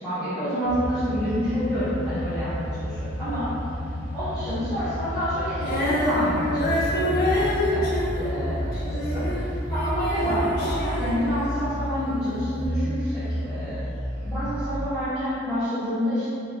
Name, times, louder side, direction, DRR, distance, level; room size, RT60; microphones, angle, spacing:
voice 1, 0.0-3.5 4.1-7.8 8.1-13.8 14.2-16.3, equal, 5° right, -19 dB, 1.0 m, -28 dB
sound 1, 0.6-14.8, equal, 35° right, 0.9 m, -31 dB
Female singing, 5.6-11.9 12.6-12.7, left 1 dB, 50° left, 0.7 m, -27 dB
4.2 x 3.0 x 2.2 m, 2.7 s
head